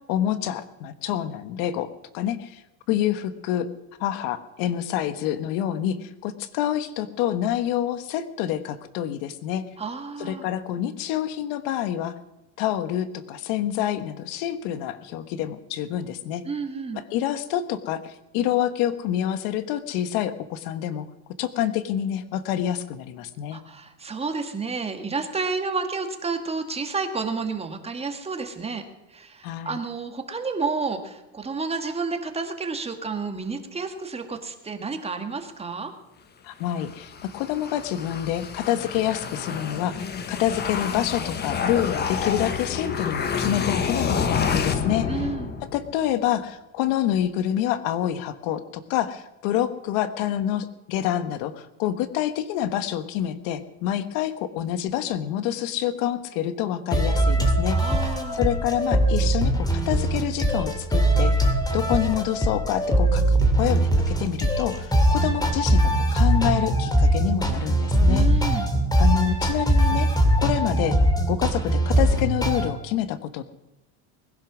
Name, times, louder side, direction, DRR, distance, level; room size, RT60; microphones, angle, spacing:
voice 1, 0.1-2.6 2.9-3.7 4.0-9.7 10.2-12.1 12.6-16.4 16.9-21.1 21.4-23.6 29.4-29.8 36.4-45.1 45.6-57.8 58.3-68.3 69.0-70.1 70.4-71.0 71.3-73.4, left 11 dB, 70° left, 12 dB, 1.3 m, -27 dB
voice 2, 9.8-10.5 16.5-17.0 23.5-28.8 29.1-35.9 45.1-45.6 57.7-58.4 68.1-68.7, right 4 dB, 15° right, 6 dB, 1.8 m, -30 dB
sound 1, 36.7-46.0, left 6 dB, 25° left, 1.3 m, -29 dB
sound 2, 56.9-72.7, right 1 dB, 10° left, 2.4 m, -21 dB
20.5 x 11.0 x 6.2 m, 0.98 s
supercardioid pair, 130°, 37 cm